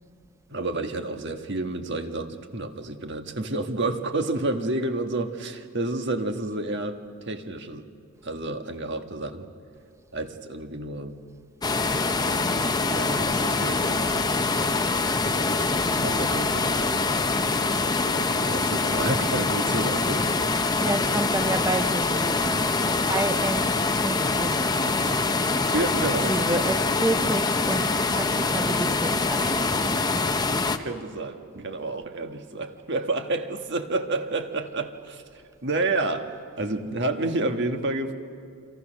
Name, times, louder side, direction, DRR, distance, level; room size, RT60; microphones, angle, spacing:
voice 1, 0.5-7.0 7.3-7.9 8.2-9.4 10.1-11.2 12.2-14.9 15.8-17.4 17.9-20.2 25.7-26.7 27.2-27.3 30.8-35.2 35.6-38.1, right 2 dB, 50° right, 1.5 m, -30 dB
sound 1, 11.6-30.8, left 3 dB, 20° left, 0.8 m, -24 dB
voice 2, 20.7-25.7 26.3-29.8, right 2 dB, 15° right, 0.6 m, -31 dB
28.0 x 25.5 x 6.4 m
head